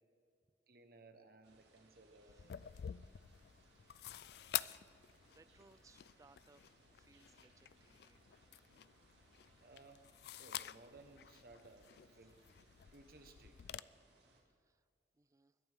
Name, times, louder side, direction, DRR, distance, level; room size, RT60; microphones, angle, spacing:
voice 1, 0.7-2.4 9.6-10.1 10.3-11.9 12.2-12.4 12.9-13.6, right 2 dB, 55° right, 6 dB, 1.3 m, -60 dB
sound 1, 1.4-14.4, right 2 dB, 85° right, 2.3 m, -69 dB
voice 2, 2.2-2.5 5.3-6.6 6.9-8.2 12.2-12.3 14.5-14.8 15.1-15.6, right 3 dB, 20° right, 14 dB, 0.3 m, -68 dB
sound 2, 2.3-13.8, left 12 dB, 65° left, 0.3 m, -49 dB
21.5 x 11.0 x 3.7 m, 2.1 s
head